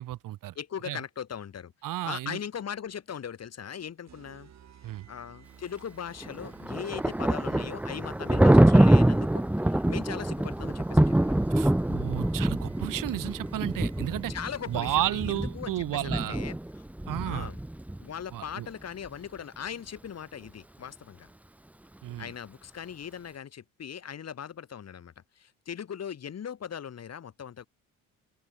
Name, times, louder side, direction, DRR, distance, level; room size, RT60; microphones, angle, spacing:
voice 1, 0.0-0.5 0.9-1.0 1.8-2.4 4.8-5.1 11.5-14.3 14.7-16.4 17.1-17.5 18.3-18.7 22.0-22.3, right 14 dB, 65° right, 2.3 m, -32 dB
voice 2, 0.5-1.7 2.0-4.5 4.8-11.6 14.3-16.9 17.3-17.6 18.0-21.3 22.2-27.6, left 8 dB, 45° left, 6.4 m, -39 dB
sound 1, 4.1-15.5, right 9 dB, 50° right, 6.4 m, -55 dB
Thunder, 6.2-18.0, right 1 dB, 5° right, 0.9 m, -25 dB
open air
cardioid pair, 90°, 35 cm